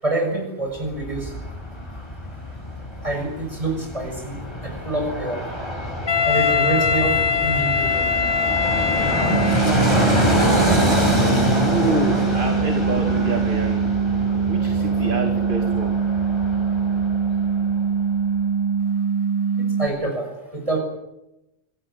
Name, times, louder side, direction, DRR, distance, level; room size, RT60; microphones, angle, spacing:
voice 1, 0.0-1.3 3.0-5.4 6.2-8.1 19.6-20.8, right 2 dB, 30° right, 4 dB, 6.9 m, -26 dB
Fixed-wing aircraft airplane, 0.8-17.7 18.0-18.1, equal, 25° left, 6.3 m, -25 dB
Wind instrument woodwind instrument, 6.1-9.9, left 6 dB, 55° left, 1.6 m, -22 dB
sound 1, 9.3-19.9, right 6 dB, 90° left, 2.2 m, -23 dB
voice 2, 11.6-13.9 14.5-16.0, right 2 dB, 50° right, 5 dB, 2.5 m, -27 dB
25.5 x 17.5 x 9.0 m, 0.89 s
omnidirectional pair, 1.2 m